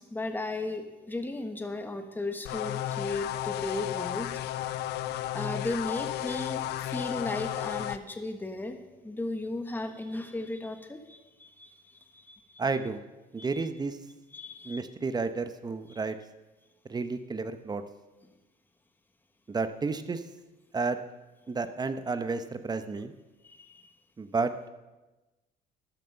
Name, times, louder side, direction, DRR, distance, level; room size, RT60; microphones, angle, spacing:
voice 1, 0.0-4.4 5.3-12.4 13.4-13.6 14.3-14.8 15.9-16.0 23.4-23.9, left 2 dB, 10° left, 6 dB, 1.3 m, -36 dB
sound 1, 2.5-8.0, left 13 dB, 75° left, 0.6 m, -33 dB
voice 2, 12.6-13.0 13.3-14.0 14.6-16.2 16.9-17.8 19.5-20.2 20.7-21.0 21.5-23.1 24.2-24.5, right 4 dB, 25° right, 10 dB, 0.9 m, -31 dB
13.0 x 11.0 x 5.8 m, 1.1 s
cardioid pair, 110°, 17 cm